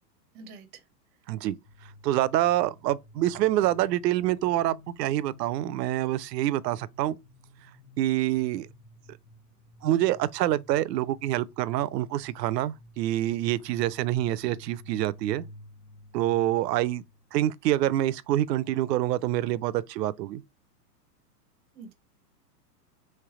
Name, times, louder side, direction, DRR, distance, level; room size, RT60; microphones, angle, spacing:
voice 1, 0.3-0.8 21.7-21.9, right 4 dB, 20° right, 0.5 m, -46 dB
sound 1, 1.6-17.6, left 1 dB, 80° left, 1.0 m, -52 dB
voice 2, 2.0-7.2 8.0-8.7 9.8-15.4 16.1-17.0 17.3-20.4, right 14 dB, 80° right, 0.6 m, -26 dB
3.3 x 3.2 x 4.7 m
supercardioid pair, 145°, 49 cm